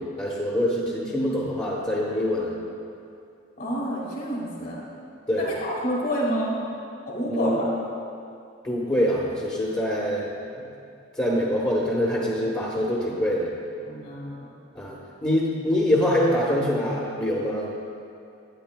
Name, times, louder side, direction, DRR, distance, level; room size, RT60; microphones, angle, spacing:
voice 1, 0.0-2.6 5.3-5.5 7.3-7.7 8.6-10.3 10.6-10.7 11.2-13.5 14.7-14.9 15.2-17.7, equal, 20° left, -5 dB, 1.0 m, -24 dB
voice 2, 3.6-4.8 5.4-6.6 7.1-7.7 13.9-14.4, equal, 50° left, -4 dB, 2.1 m, -28 dB
12.5 x 9.3 x 2.2 m, 2.5 s
head